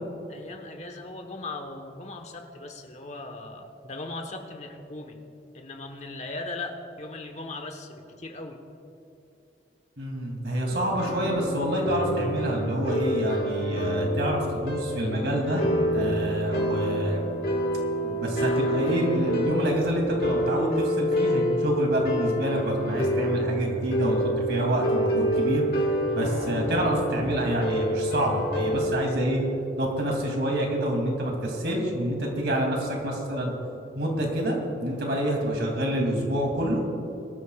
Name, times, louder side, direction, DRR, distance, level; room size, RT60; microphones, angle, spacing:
voice 1, 0.3-5.2 5.5-8.6 26.1-26.5, left 2 dB, 40° left, 4 dB, 1.2 m, -38 dB
voice 2, 10.0-15.7 15.9-17.2 18.0-25.6 26.1-29.4 29.8-33.5 34.0-36.8, equal, 75° right, 0 dB, 2.8 m, -27 dB
sound 1, 10.7-29.1, equal, 60° left, 2.0 m, -28 dB
22.5 x 13.5 x 2.4 m, 2.7 s
head